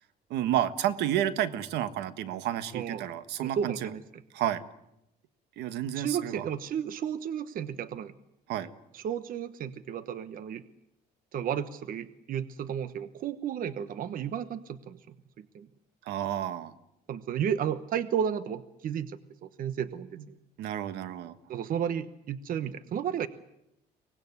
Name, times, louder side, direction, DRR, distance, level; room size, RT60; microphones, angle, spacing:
voice 1, 0.3-3.9 4.3-4.6 5.6-6.5 8.5-8.7 16.1-16.7 20.6-21.3, right 11 dB, 80° right, 12 dB, 1.4 m, -30 dB
voice 2, 2.7-3.1 3.4-4.2 5.9-8.1 8.9-10.6 11.3-15.7 17.1-20.4 21.5-23.3, right 8 dB, 55° right, 13 dB, 1.1 m, -33 dB
24.5 x 19.0 x 9.7 m, 0.83 s
cardioid pair, 110°, 17 cm